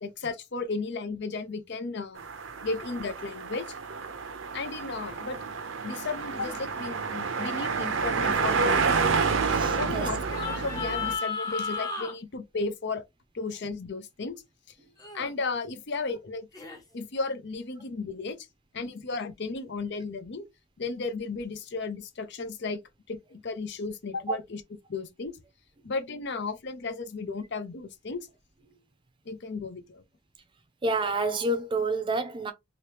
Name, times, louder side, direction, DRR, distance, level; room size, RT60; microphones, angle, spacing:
voice 1, 0.0-2.2 2.6-3.7 4.5-5.4 5.8-9.1 9.7-13.0 13.3-14.4 15.1-16.5 16.9-18.5 18.7-20.4 20.8-22.8 23.1-24.4 24.9-25.4 25.8-28.3 29.3-30.0, left 4 dB, 55° left, 0.6 m, -34 dB
sound 1, 2.2-11.2, right 5 dB, 65° right, 0.6 m, -29 dB
sound 2, 6.4-6.6 10.2-12.1 15.0-15.3 16.5-16.8, left 5 dB, 20° left, 0.8 m, -34 dB
voice 2, 9.4-10.1 24.3-24.4 30.8-32.5, right 2 dB, 25° right, 0.6 m, -29 dB
2.9 x 2.9 x 3.3 m
head